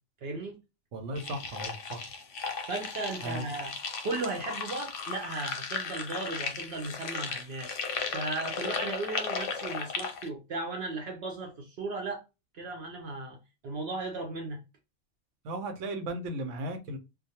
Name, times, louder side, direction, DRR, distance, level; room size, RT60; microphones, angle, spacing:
voice 1, 0.2-0.6 2.7-3.8 4.0-7.8 8.1-12.2 12.5-13.4 13.6-14.6, right 3 dB, 65° right, 0.8 m, -36 dB
voice 2, 0.9-2.1 3.2-3.4 15.4-17.0, right 1 dB, 90° right, 1.0 m, -36 dB
sound 1, 1.2-10.3, left 5 dB, 85° left, 0.9 m, -36 dB
2.3 x 2.2 x 2.7 m
omnidirectional pair, 1.2 m